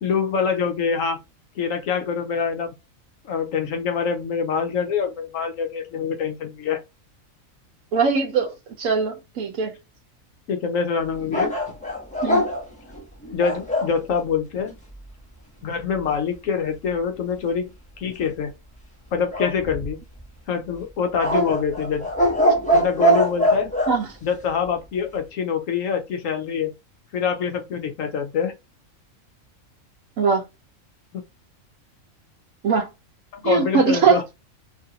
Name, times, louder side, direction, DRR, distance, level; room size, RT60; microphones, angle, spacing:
voice 1, 0.0-1.2 1.6-2.8 3.2-6.8 10.5-11.6 13.3-14.7 15.6-17.7 18.0-18.5 19.1-20.0 20.5-22.1 22.7-23.7 24.2-26.7 27.1-28.5 31.1-31.2 33.3-34.2, left 6 dB, 70° left, 1.1 m, -25 dB
voice 2, 7.9-8.5 8.8-9.7 12.2-12.5 23.9-24.1 30.2-30.4 32.6-32.9 33.4-34.2, right 5 dB, 75° right, 1.2 m, -21 dB
sound 1, 11.3-13.9 19.3-20.2 21.2-24.0, right 1 dB, 5° left, 0.9 m, -22 dB
3.1 x 2.5 x 2.7 m
omnidirectional pair, 1.5 m